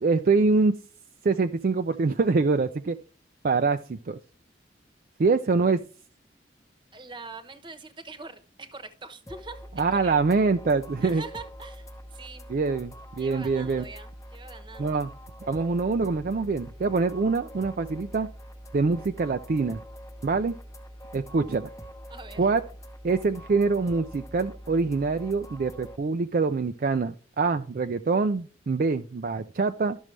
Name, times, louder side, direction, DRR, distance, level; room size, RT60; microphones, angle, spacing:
voice 1, 0.0-0.7 1.2-3.0 3.4-4.2 5.2-5.8 9.8-11.2 12.5-13.8 14.8-15.1 15.4-18.3 18.7-19.8 20.2-20.5 21.1-21.6 22.4-22.6 23.0-30.0, right 4 dB, 50° right, 0.4 m, -25 dB
voice 2, 6.9-10.1 11.0-12.5 13.2-15.1 22.1-22.4, right 3 dB, 25° right, 1.0 m, -43 dB
sound 1, 9.3-26.0, equal, 15° left, 0.8 m, -44 dB
12.0 x 6.3 x 3.2 m
head